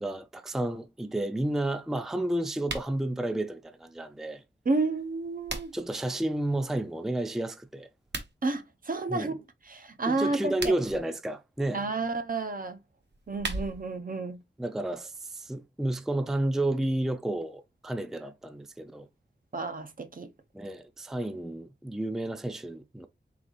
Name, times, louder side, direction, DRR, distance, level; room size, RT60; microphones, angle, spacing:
voice 1, 0.0-4.4 5.7-7.9 9.1-9.3 10.1-11.8 14.6-19.1 20.5-23.1, right 1 dB, ahead, 0.4 m, -31 dB
sound 1, 2.6-2.9 5.0-5.9 8.0-8.3 10.4-11.0 13.0-14.0, right 2 dB, 65° right, 1.1 m, -37 dB
voice 2, 4.6-5.7 8.4-9.3 9.7-10.7 11.7-12.8 13.3-14.4 19.5-20.3, right 3 dB, 45° right, 0.6 m, -31 dB
3.9 x 3.9 x 3.0 m
wide cardioid pair, 95°, 20 cm